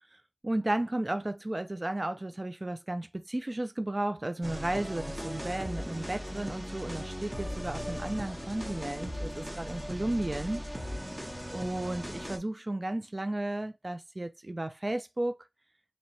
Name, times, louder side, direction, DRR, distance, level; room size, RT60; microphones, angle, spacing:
voice 1, 0.4-10.6 11.5-15.4, right 1 dB, 45° right, 0.5 m, -33 dB
sound 1, 4.4-12.4, equal, 15° right, 1.1 m, -38 dB
3.0 x 2.9 x 4.1 m
wide cardioid pair, 50°, 0 cm